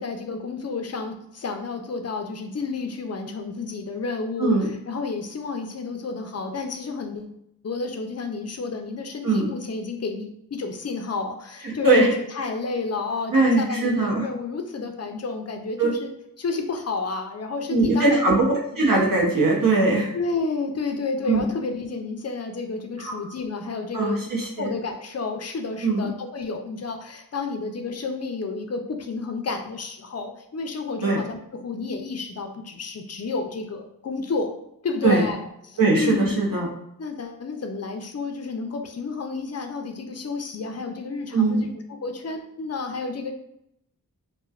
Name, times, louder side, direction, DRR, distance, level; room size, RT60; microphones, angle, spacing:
voice 1, 0.0-7.3 7.6-16.1 16.4-18.3 20.1-24.2 24.6-31.4 31.6-34.5 34.8-36.3 37.0-41.7 42.0-43.3, left 4 dB, 45° left, 4 dB, 0.4 m, -30 dB
voice 2, 11.6-12.1 13.3-14.2 15.8-15.9 17.7-20.1 21.3-21.4 23.0-23.1 23.9-24.7 25.8-26.1 31.0-31.2 35.0-35.2 35.8-36.7 41.3-41.6, right 3 dB, 65° right, -3 dB, 0.8 m, -20 dB
3.0 x 2.1 x 2.3 m, 0.78 s
wide cardioid pair, 40°, 36 cm